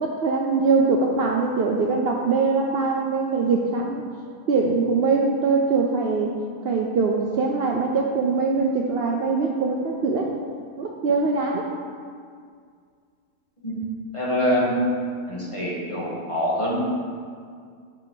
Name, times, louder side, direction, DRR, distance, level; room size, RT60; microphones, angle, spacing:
voice 1, 0.0-4.0 4.5-6.3 6.6-10.3 10.8-11.7, right 4 dB, 90° right, 0 dB, 0.5 m, -22 dB
voice 2, 14.1-14.7 15.3-16.8, equal, 20° left, -6 dB, 1.5 m, -25 dB
8.2 x 5.4 x 3.8 m, 2.1 s
omnidirectional pair, 1.7 m